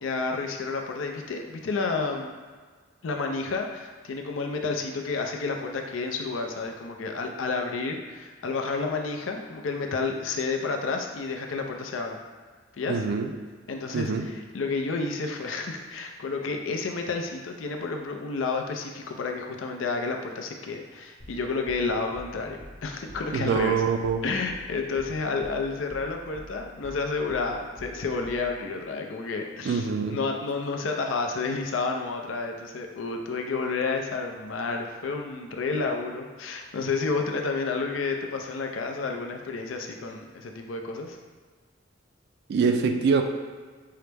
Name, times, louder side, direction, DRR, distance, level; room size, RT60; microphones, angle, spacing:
voice 1, 0.0-2.3 3.0-12.2 12.8-13.0 13.7-23.8 24.2-41.2, left 4 dB, 90° left, 3 dB, 0.5 m, -30 dB
voice 2, 12.9-13.3 13.9-14.3 23.3-24.2 29.6-30.2 42.5-43.2, right 5 dB, 60° right, 5 dB, 0.3 m, -24 dB
sound 1, 21.2-28.7, equal, 35° left, 1.0 m, -47 dB
5.6 x 2.0 x 3.3 m, 1.5 s
head